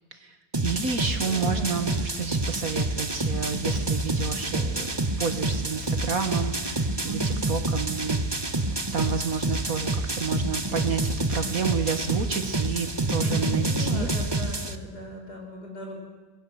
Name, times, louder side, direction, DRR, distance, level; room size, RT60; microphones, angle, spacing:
voice 1, 0.1-4.9 5.2-8.5 8.9-14.1, right 5 dB, 50° right, 8 dB, 1.9 m, -30 dB
sound 1, 0.5-14.8, right 2 dB, 15° right, 0.9 m, -28 dB
voice 2, 1.0-1.8 7.0-7.5 13.2-16.0, left 1 dB, 55° left, 1 dB, 6.9 m, -38 dB
27.0 x 21.0 x 7.9 m, 1.3 s
omnidirectional pair, 2.0 m